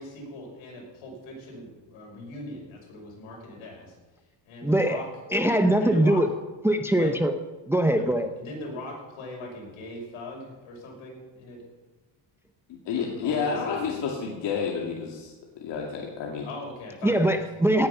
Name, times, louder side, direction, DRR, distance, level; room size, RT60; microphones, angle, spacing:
voice 1, 0.0-3.9 4.5-5.1 5.8-6.2 7.0-7.1 7.9-11.7 13.0-14.1 16.4-17.4, left 2 dB, 80° left, -1 dB, 6.0 m, -40 dB
voice 2, 4.6-5.0 5.3-6.3 6.6-7.3 7.7-8.3 17.0-17.9, right 1 dB, 5° right, 7 dB, 0.6 m, -22 dB
voice 3, 12.9-15.3 15.6-16.5, left 6 dB, 60° left, -2 dB, 2.4 m, -29 dB
18.0 x 9.5 x 5.6 m, 1.2 s
cardioid pair, 145°, 48 cm